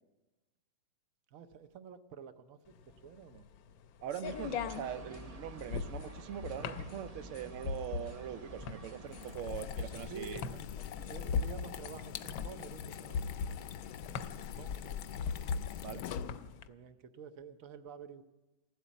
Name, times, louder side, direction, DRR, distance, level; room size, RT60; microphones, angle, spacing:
voice 1, 1.3-3.5 9.8-10.4 11.0-13.8 14.3-15.8 16.7-18.2, right 6 dB, 60° right, 11 dB, 1.0 m, -50 dB
sound 1, 2.8-16.6, left 5 dB, 85° left, 1.4 m, -39 dB
voice 2, 4.0-10.4 10.9-11.0 15.8-16.0, right 9 dB, 90° right, 11 dB, 0.6 m, -42 dB
sound 2, 4.2-9.4, right 1 dB, 45° right, 0.5 m, -49 dB
sound 3, 9.1-16.7, left 9 dB, 65° left, 1.0 m, -44 dB
15.0 x 8.3 x 10.0 m, 1.1 s
omnidirectional pair, 2.1 m